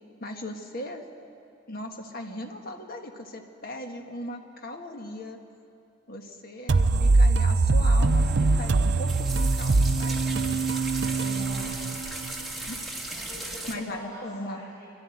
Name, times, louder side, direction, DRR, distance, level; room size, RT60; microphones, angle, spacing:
voice 1, 0.2-1.0 1.7-5.4 6.1-10.2 12.7-12.8 13.7-14.6, left 1 dB, 50° left, 3 dB, 1.6 m, -38 dB
sound 1, 6.7-12.3, right 3 dB, 65° right, 0.6 m, -22 dB
sound 2, 8.0-13.7, right 1 dB, ahead, 1.9 m, -38 dB
voice 2, 11.0-11.9 13.1-14.9, equal, 20° left, -7 dB, 5.8 m, -44 dB
24.0 x 12.0 x 9.2 m, 2.6 s
head